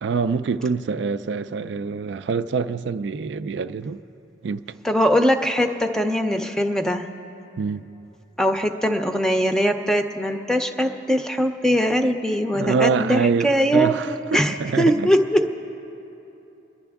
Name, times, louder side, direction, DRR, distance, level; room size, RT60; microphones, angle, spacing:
voice 1, 0.0-4.0 4.4-4.6 7.6-7.9 12.5-15.1, right 5 dB, 65° right, 0.4 m, -25 dB
voice 2, 4.8-7.1 8.4-15.4, equal, 5° left, 0.6 m, -21 dB
27.0 x 11.0 x 3.5 m
head